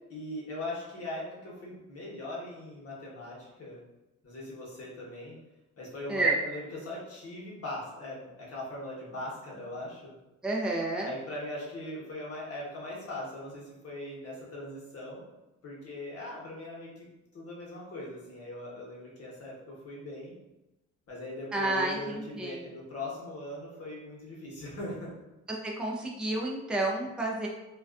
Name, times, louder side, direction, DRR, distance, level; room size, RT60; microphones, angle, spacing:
voice 1, 0.1-3.8 4.2-5.4 5.8-10.1 11.0-15.2 15.6-17.1 17.3-20.3 21.1-25.1, left 1 dB, 50° left, -4 dB, 1.0 m, -40 dB
voice 2, 10.4-11.1 21.5-22.6 25.6-27.5, right 2 dB, 5° right, -2 dB, 0.4 m, -30 dB
2.3 x 2.3 x 2.4 m, 1.0 s
cardioid pair, 90°, 30 cm